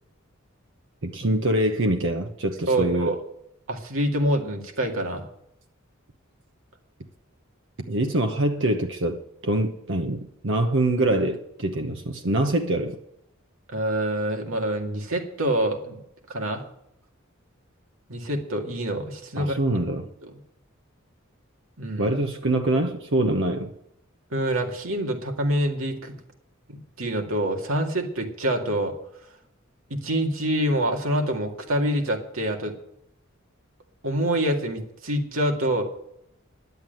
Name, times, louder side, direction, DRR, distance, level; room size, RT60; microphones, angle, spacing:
voice 1, 1.0-3.1 7.9-13.0 19.4-20.1 22.0-23.7, right 1 dB, 65° right, 1.0 m, -24 dB
voice 2, 2.7-3.2 3.7-5.2 13.7-16.0 16.3-16.6 18.1-19.7 20.2-20.3 21.8-22.1 24.3-26.2 26.7-28.9 29.9-32.7 34.0-35.8, right 1 dB, 85° right, 2.1 m, -26 dB
11.0 x 8.0 x 9.1 m
head